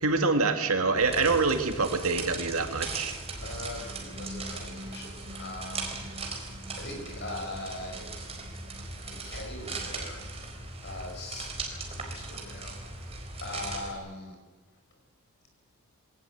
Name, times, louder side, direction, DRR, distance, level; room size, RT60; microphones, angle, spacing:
voice 1, 0.0-3.2, right 3 dB, 70° right, 6 dB, 2.2 m, -26 dB
sound 1, 1.0-13.9, right 3 dB, 25° right, 4.1 m, -39 dB
voice 2, 3.4-6.0 6.7-8.1 9.0-10.2 10.8-12.8 13.4-14.4, left 2 dB, 50° left, 2 dB, 6.0 m, -41 dB
sound 2, 3.4-11.0, equal, 55° right, 3.0 m, -48 dB
22.5 x 18.5 x 8.5 m, 1.3 s
head